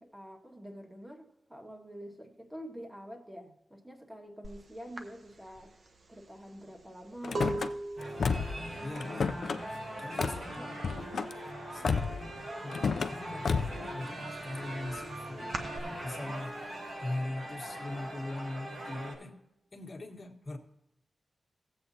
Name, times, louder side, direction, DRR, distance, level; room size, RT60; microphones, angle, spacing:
voice 1, 0.0-5.7 6.1-7.7, equal, 15° right, 2 dB, 1.7 m, -47 dB
sound 1, 4.4-4.6 5.0-10.6 10.9-11.4 11.7-12.8 13.2-15.8, right 3 dB, 60° right, 1.0 m, -41 dB
Car / Slam, 7.2-7.7 8.2-8.6 8.9-9.6 10.2-10.4 10.8-11.3 11.8-12.3 12.7-13.1 13.4-13.8, left 5 dB, 75° left, 0.5 m, -31 dB
sound 2, 8.0-19.1, right 1 dB, 85° right, 4.1 m, -41 dB
voice 2, 8.8-9.4 10.0-11.2 11.7-15.6 16.0-16.5 17.0-19.3 19.7-20.6, left 2 dB, 40° left, 1 dB, 1.6 m, -40 dB
16.5 x 8.0 x 2.8 m, 0.87 s
wide cardioid pair, 85°, 0 cm